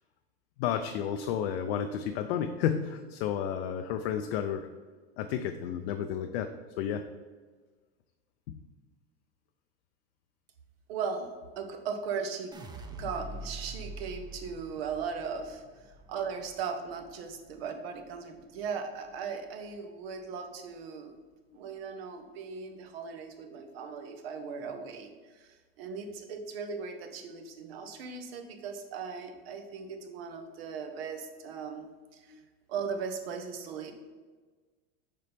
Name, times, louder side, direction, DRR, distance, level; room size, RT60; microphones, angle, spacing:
voice 1, 0.6-4.7 5.2-6.5 6.8-7.0 8.5-8.6 32.3-32.4, left 8 dB, 75° left, 6 dB, 0.5 m, -31 dB
voice 2, 10.9-11.3 11.6-12.5 12.9-15.6 16.1-21.1 21.5-31.9 32.1-32.3 32.7-33.9, right 6 dB, 75° right, 5 dB, 1.0 m, -38 dB
sound 1, 12.5-18.7 19.1-19.7, right 1 dB, 15° right, 0.5 m, -45 dB
6.7 x 4.1 x 3.4 m, 1.4 s
supercardioid pair, 120°, 30 cm